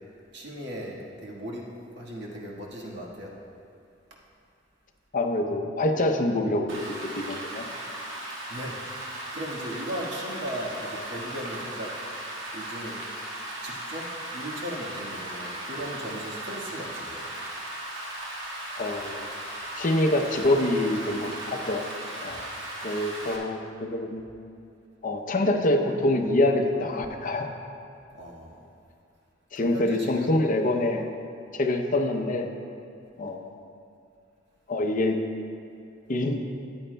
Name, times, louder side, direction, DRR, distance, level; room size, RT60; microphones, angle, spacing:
voice 1, 0.3-1.6 1.9-3.3 8.5-11.9 12.5-13.0 13.6-17.2 28.1-28.6 29.5-30.5, equal, 65° right, -3 dB, 1.5 m, -37 dB
voice 2, 5.1-6.7 7.2-8.0 18.8-19.2 19.8-21.9 22.2-22.5 22.8-24.2 25.0-27.5 29.5-31.1 31.5-32.5 33.2-33.5 34.7-35.2 36.1-36.4, left 1 dB, 45° left, 4 dB, 0.6 m, -25 dB
Rain, 6.7-23.4, right 1 dB, 85° right, 1.7 m, -37 dB
14.0 x 9.8 x 2.2 m, 2.5 s
head